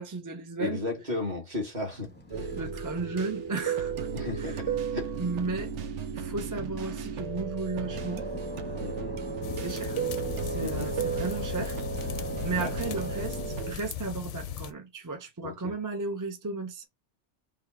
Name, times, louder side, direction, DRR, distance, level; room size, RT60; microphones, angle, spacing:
voice 1, 0.0-0.8 2.5-4.1 4.4-4.6 5.2-5.7 6.1-8.3 9.5-10.0 10.4-16.8, right 3 dB, 25° right, 0.4 m, -35 dB
voice 2, 0.6-2.6 4.1-5.1 8.8-9.2 10.6-10.9 12.5-12.9 15.4-15.7, left 2 dB, 40° right, 1.7 m, -35 dB
Fixed-wing aircraft airplane, 2.1-7.4 7.8-13.6, right 5 dB, 10° left, 0.7 m, -37 dB
sound 1, 2.3-13.7, right 5 dB, 90° right, 1.0 m, -36 dB
sound 2, 9.4-14.7, left 10 dB, 85° left, 0.9 m, -37 dB
3.3 x 2.9 x 4.5 m
omnidirectional pair, 1.2 m